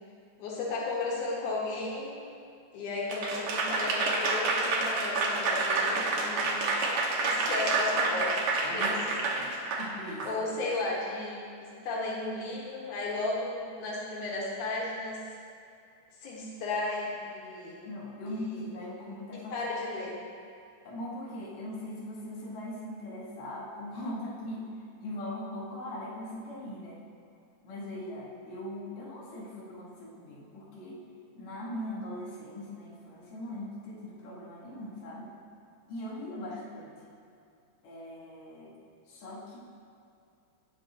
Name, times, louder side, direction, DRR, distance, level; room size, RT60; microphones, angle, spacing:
voice 1, 0.4-2.2 2.7-6.6 7.2-9.2 10.2-15.2 16.2-17.9 18.2-18.6 19.0-20.2, left 2 dB, 90° left, -4 dB, 2.9 m, -34 dB
Applause / Crowd, 3.1-10.3, right 3 dB, 70° right, 2.1 m, -28 dB
voice 2, 8.6-9.0 9.3-10.3 17.9-19.6 20.8-24.7 25.0-27.0 27.6-31.0 31.4-35.3 35.9-36.9 37.8-38.7 39.1-39.6, left 1 dB, 70° left, -6 dB, 2.8 m, -40 dB
17.5 x 6.1 x 2.9 m, 2.5 s
omnidirectional pair, 3.4 m